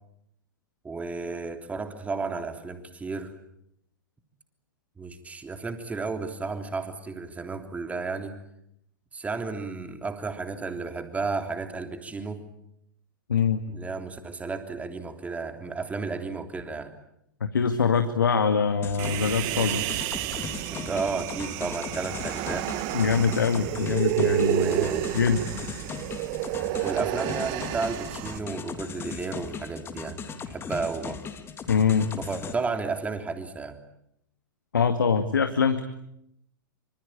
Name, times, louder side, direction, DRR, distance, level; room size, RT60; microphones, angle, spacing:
voice 1, 0.8-3.3 5.0-8.4 9.1-12.4 13.7-16.9 20.7-22.7 24.5-25.1 26.8-31.2 32.2-33.8, right 4 dB, 15° right, 7 dB, 3.4 m, -33 dB
voice 2, 13.3-13.6 17.5-19.9 22.9-24.9 25.1-25.5 31.7-32.1 34.7-35.8, left 6 dB, 75° left, 8 dB, 2.1 m, -23 dB
sound 1, 18.8-32.5, left 6 dB, 20° left, 3.1 m, -38 dB
Human voice, 19.0-28.4, right 16 dB, 40° right, 1.4 m, -30 dB
26.5 x 26.0 x 8.7 m, 0.77 s
figure-of-eight pair, 100°, 11 cm